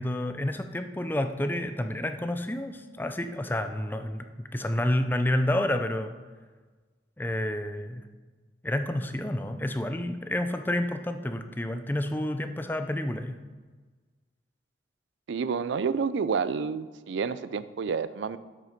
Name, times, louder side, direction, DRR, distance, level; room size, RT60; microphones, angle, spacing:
voice 1, 0.0-6.1 7.2-8.0 8.6-13.4, left 1 dB, 10° left, 7 dB, 0.5 m, -29 dB
voice 2, 15.3-18.4, right 5 dB, 85° right, 15 dB, 0.4 m, -29 dB
7.5 x 6.6 x 5.1 m, 1.4 s
head